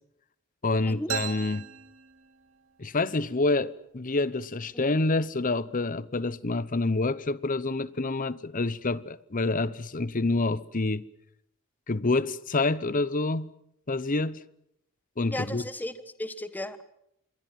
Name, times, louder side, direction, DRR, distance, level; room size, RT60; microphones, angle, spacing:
voice 1, 0.6-1.7 2.8-11.1 11.9-13.5 13.9-14.4 15.2-15.6, left 2 dB, 40° left, 0.9 m, -27 dB
sound 1, 1.1-2.8, right 8 dB, 70° right, 2.7 m, -37 dB
voice 2, 15.3-16.8, left 1 dB, 10° left, 1.4 m, -35 dB
27.0 x 21.5 x 7.6 m
head